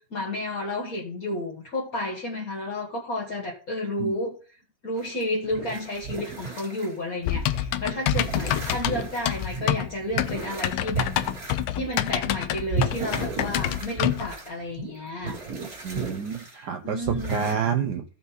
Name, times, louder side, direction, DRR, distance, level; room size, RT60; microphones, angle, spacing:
voice 1, 0.0-4.3 4.8-11.1 11.7-15.4 16.5-17.6, left 1 dB, 45° left, -3 dB, 2.0 m, -31 dB
sound 1, 5.0-6.9 7.2-12.1 12.7-16.5 17.0-17.5, right 5 dB, 45° right, 2.7 m, -34 dB
Typing, 7.3-14.3, left 12 dB, 80° left, 1.5 m, -27 dB
voice 2, 15.8-18.0, right 7 dB, 65° right, 6 dB, 1.1 m, -28 dB
14.5 x 5.4 x 4.1 m, 0.40 s
omnidirectional pair, 2.3 m